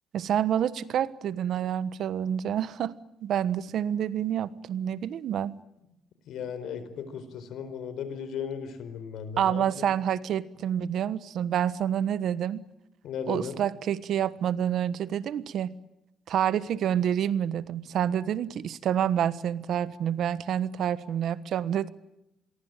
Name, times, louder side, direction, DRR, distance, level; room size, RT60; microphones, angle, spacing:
voice 1, 0.1-2.9 3.2-5.5 9.4-12.6 13.3-15.7 16.3-21.9, right 9 dB, 70° right, 16 dB, 1.3 m, -28 dB
voice 2, 6.3-9.9 13.0-13.6, left 7 dB, 80° left, 12 dB, 4.4 m, -36 dB
27.0 x 22.5 x 9.1 m, 0.84 s
cardioid pair, 105°, 0 cm